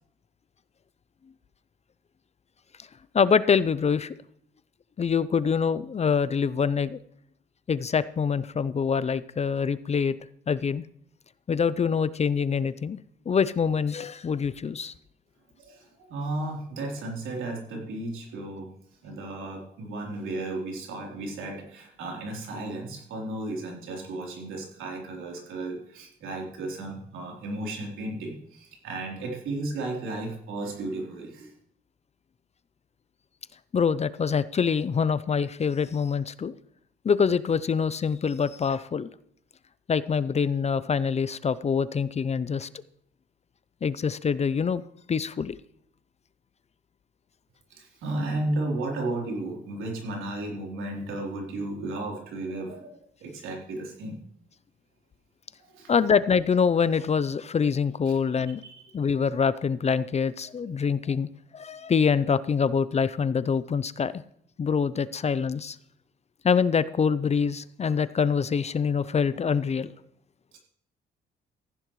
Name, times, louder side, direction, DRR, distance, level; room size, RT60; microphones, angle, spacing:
voice 1, 3.1-4.1 5.0-7.0 7.7-10.1 10.5-10.8 11.5-13.0 13.3-14.9 33.7-36.5 37.0-39.1 39.9-42.7 43.8-44.8 45.1-45.6 55.9-58.6 58.9-64.2 64.6-65.8 66.4-69.9, left 6 dB, 35° left, 16 dB, 0.6 m, -25 dB
voice 2, 15.6-18.7 19.0-31.5 47.7-54.2 55.6-55.9 58.6-58.8 70.5-70.6, right 2 dB, 85° right, -1 dB, 3.7 m, -34 dB
15.0 x 10.5 x 3.2 m, 0.68 s
cardioid pair, 90°, 20 cm